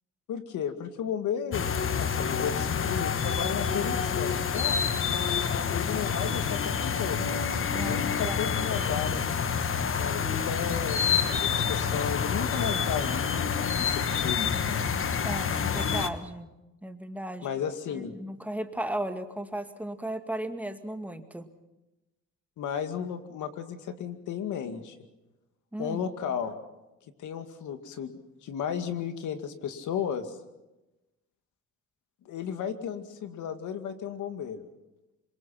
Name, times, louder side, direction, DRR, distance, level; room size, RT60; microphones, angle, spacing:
voice 1, 0.3-4.8 5.7-7.2 7.7-9.3 9.9-11.0 11.3-14.8 17.4-18.1 22.6-25.0 25.8-26.6 27.2-28.2 28.4-30.4 32.3-34.6, left 8 dB, 80° left, 8 dB, 2.3 m, -34 dB
sound 1, 1.5-16.1, left 6 dB, 45° left, 1.4 m, -28 dB
voice 2, 7.7-8.6 15.2-16.5 16.8-17.5 18.0-21.5 25.7-26.1, right 1 dB, 5° right, 6 dB, 2.1 m, -35 dB
26.5 x 23.0 x 5.9 m, 0.99 s
cardioid pair, 90°, 30 cm